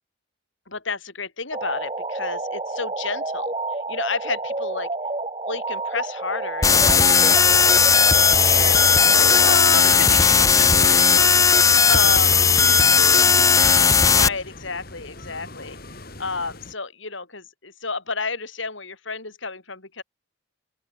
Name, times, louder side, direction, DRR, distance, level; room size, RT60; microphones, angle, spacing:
voice 1, 0.7-4.9 5.5-11.1 11.9-12.4 14.1-15.8 16.2-20.0, left 4 dB, 65° left, 4.6 m, -31 dB
sound 1, 1.5-9.6, right 2 dB, 25° right, 1.9 m, -30 dB
sound 2, 6.6-14.3, left 6 dB, 15° left, 0.4 m, -16 dB
sound 3, 6.8-16.7, left 2 dB, 45° left, 4.7 m, -42 dB
voice 2, 10.7-11.5 11.9-13.8, right 3 dB, 70° right, 5.1 m, -36 dB
head